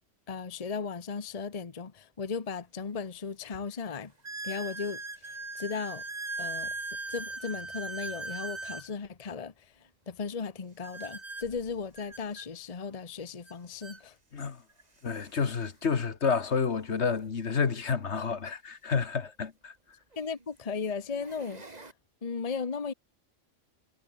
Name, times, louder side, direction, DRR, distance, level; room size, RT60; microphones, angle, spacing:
voice 1, 0.3-4.1 4.4-6.0 6.4-6.7 7.1-9.7 10.1-14.2 20.2-21.6 22.2-22.9, left 5 dB, 30° left, 1.1 m, -36 dB
sound 1, 2.5-2.6 3.3-3.4 4.2-8.9 10.8-12.5 13.5-13.6 13.8-14.0 14.8-14.9 17.1-17.2 19.3-19.4 20.1-20.4 21.0-21.9, right 3 dB, 35° right, 2.3 m, -39 dB
voice 2, 15.0-19.7, left 5 dB, 65° left, 1.7 m, -29 dB
omnidirectional pair, 1.3 m